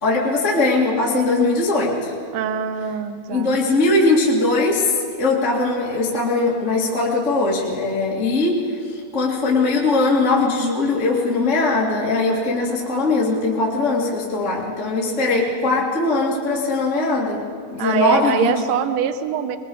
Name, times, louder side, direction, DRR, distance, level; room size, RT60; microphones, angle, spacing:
voice 1, 0.0-2.1 3.3-8.6 9.1-17.4 17.7-18.5, left 3 dB, 25° left, -4 dB, 1.9 m, -20 dB
voice 2, 2.3-3.6 15.1-15.8 17.8-19.6, right 8 dB, 75° right, 8 dB, 1.6 m, -24 dB
22.0 x 22.0 x 5.5 m, 2.2 s
omnidirectional pair, 4.3 m